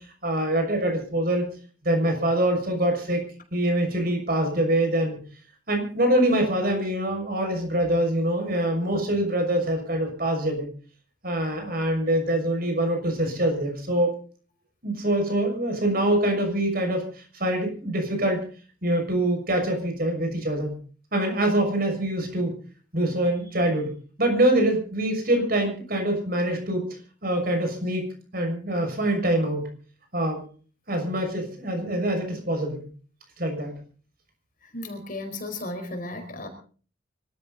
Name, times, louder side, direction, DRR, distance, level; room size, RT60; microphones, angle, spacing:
voice 1, 0.2-1.4 1.8-3.2 3.5-5.2 5.7-10.7 11.2-14.2 14.8-17.0 17.3-18.4 18.8-20.8 21.1-22.6 22.9-23.9 24.2-26.8 27.2-28.1 28.3-29.7 30.1-30.4 30.9-32.9 33.4-33.8, right 1 dB, 50° right, 4 dB, 6.3 m, -24 dB
voice 2, 34.6-36.5, left 2 dB, 45° left, 5 dB, 4.6 m, -35 dB
25.5 x 13.5 x 4.1 m, 0.40 s
head